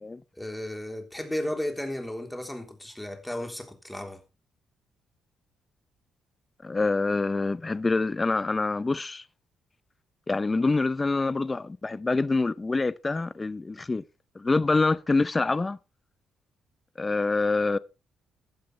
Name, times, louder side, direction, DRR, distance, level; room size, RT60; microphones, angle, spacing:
voice 1, 0.3-4.2, left 1 dB, 5° left, 3.5 m, -34 dB
voice 2, 6.6-9.2 10.3-14.0 14.4-15.8 17.0-17.8, left 3 dB, 25° left, 0.7 m, -26 dB
16.0 x 11.5 x 3.3 m
cardioid pair, 90°, 0 cm